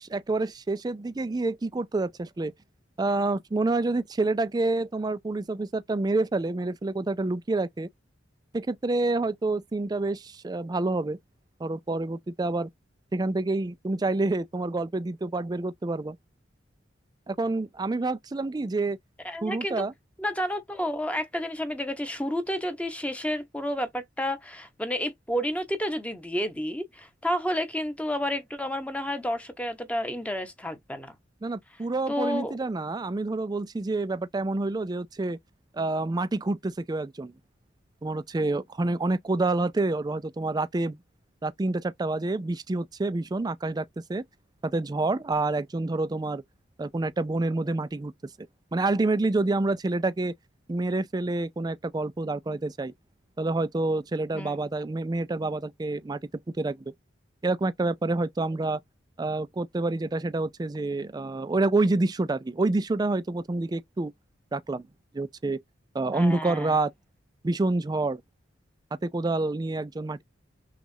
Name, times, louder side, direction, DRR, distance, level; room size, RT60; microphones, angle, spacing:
voice 1, 0.0-2.5 3.0-7.9 8.5-11.2 11.6-12.7 13.1-16.2 17.3-19.0 19.4-19.9 31.4-35.4 35.7-37.3 38.0-41.0 41.4-44.2 44.6-46.4 46.8-48.1 48.7-50.3 50.7-52.9 53.4-56.2 56.6-56.9 57.4-58.8 59.2-64.1 64.5-64.9 65.1-65.6 65.9-66.9 67.4-68.2 69.0-70.2, right 2 dB, 20° right, 0.4 m, -28 dB
voice 2, 19.2-19.8 20.2-31.1 32.1-32.5 54.3-54.5 66.1-66.8, equal, 5° left, 0.9 m, -30 dB
6.1 x 2.4 x 2.7 m
head